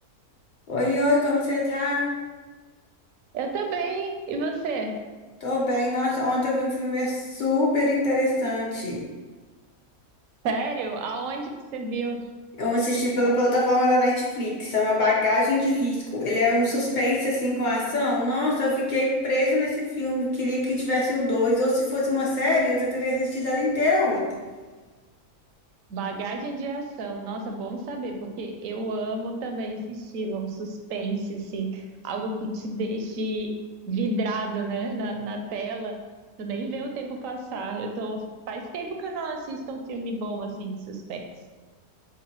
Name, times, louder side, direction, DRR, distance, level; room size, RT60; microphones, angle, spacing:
voice 1, 0.7-2.1 5.4-9.0 12.6-24.2, left 1 dB, 35° left, -4 dB, 1.0 m, -24 dB
voice 2, 3.3-4.9 10.4-12.2 25.9-33.5 33.9-36.0 36.4-41.2, right 3 dB, 70° right, 3 dB, 0.9 m, -31 dB
7.1 x 2.4 x 3.0 m, 1.3 s
omnidirectional pair, 1.6 m